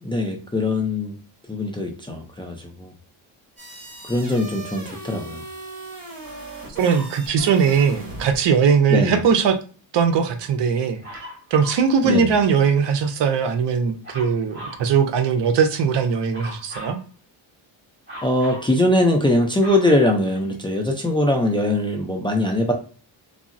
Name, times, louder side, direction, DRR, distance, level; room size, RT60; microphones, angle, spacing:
voice 1, 0.0-1.1 1.5-2.9 4.1-5.4 8.9-9.2 12.0-12.3 18.2-22.7, left 1 dB, 10° left, 0.4 m, -21 dB
sound 1, 3.6-8.4, right 2 dB, 45° right, 1.4 m, -38 dB
Dog, 6.8-7.2 11.0-11.9 14.0-14.9 16.3-17.0 18.1-18.7 19.2-20.8 21.5-21.6, equal, 25° right, 1.4 m, -38 dB
voice 2, 6.8-9.6 9.9-11.2 11.5-17.0, right 6 dB, 60° right, 0.6 m, -20 dB
3.6 x 2.0 x 2.5 m
cardioid pair, 110°, 47 cm